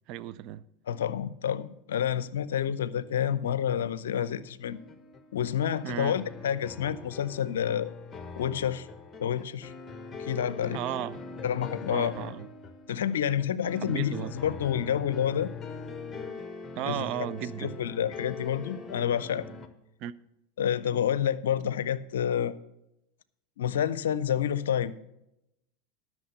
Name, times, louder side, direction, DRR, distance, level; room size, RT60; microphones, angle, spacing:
voice 1, 0.1-0.7 5.8-6.2 10.7-11.2 11.9-12.5 13.8-14.3 16.8-17.8 20.0-20.1, right 12 dB, 50° right, 0.5 m, -34 dB
voice 2, 0.9-4.8 5.3-7.9 8.4-8.9 9.2-9.7 10.2-10.8 11.4-12.1 12.9-15.5 16.9-17.1 17.6-19.5 20.6-22.5 23.6-24.9, left 9 dB, 70° left, 0.5 m, -29 dB
sound 1, 4.7-19.7, left 4 dB, 20° left, 1.3 m, -42 dB
12.0 x 6.2 x 6.6 m
figure-of-eight pair, 85°, 0 cm